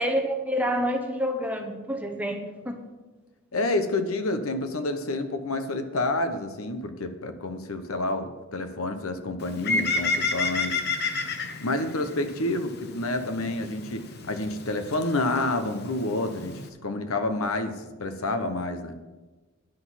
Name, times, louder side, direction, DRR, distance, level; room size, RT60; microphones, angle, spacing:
voice 1, 0.0-2.9, equal, 5° right, 4 dB, 1.0 m, -28 dB
voice 2, 3.5-10.8 11.6-18.9, left 2 dB, 85° left, 8 dB, 1.0 m, -29 dB
Bird, 9.4-16.7, left 3 dB, 50° left, 0.9 m, -32 dB
10.5 x 6.2 x 7.4 m, 1.2 s
head